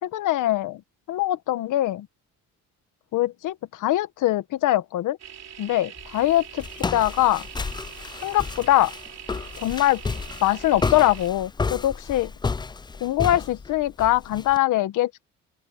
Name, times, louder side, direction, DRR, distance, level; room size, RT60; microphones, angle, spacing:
voice 1, 0.0-0.8 1.1-2.1 3.1-5.2 5.6-7.5 8.2-8.9 9.6-10.0 10.4-12.3 13.0-15.2, left 14 dB, 85° left, 1.4 m, -23 dB
sound 1, 5.2-11.3, right 9 dB, 60° right, 3.5 m, -43 dB
Walk footsteps, 6.0-14.6, left 4 dB, 15° left, 0.4 m, -32 dB
open air
cardioid pair, 90°, 30 cm